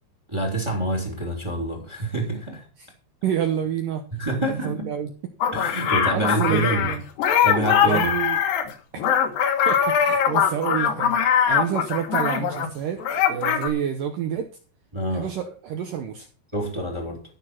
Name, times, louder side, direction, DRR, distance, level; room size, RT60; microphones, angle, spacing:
voice 1, 0.3-2.7 4.1-4.9 5.5-6.9 7.4-8.1 14.9-15.3 16.5-17.2, right 2 dB, 10° right, 1.6 m, -27 dB
voice 2, 3.2-4.0 4.4-5.1 6.1-7.0 7.8-8.4 8.9-9.0 9.7-14.5 15.1-16.3, right 9 dB, 80° right, 1.9 m, -28 dB
sound 1, 5.4-12.7 13.0-13.7, left 8 dB, 65° left, 2.9 m, -21 dB
14.0 x 6.4 x 5.9 m
omnidirectional pair, 5.1 m